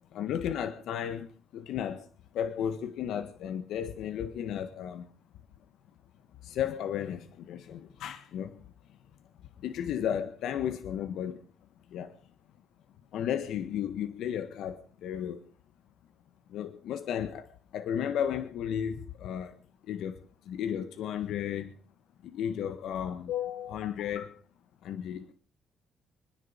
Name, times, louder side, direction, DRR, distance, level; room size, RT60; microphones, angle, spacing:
voice 1, 0.1-2.1 2.3-5.1 6.4-8.6 9.6-11.4 11.9-12.1 13.1-15.4 16.5-19.6 19.9-20.2 20.4-21.7 22.2-24.3 24.8-25.3, left 9 dB, 75° left, 1.6 m, -34 dB
26.0 x 10.5 x 5.3 m
cardioid pair, 105°, 0 cm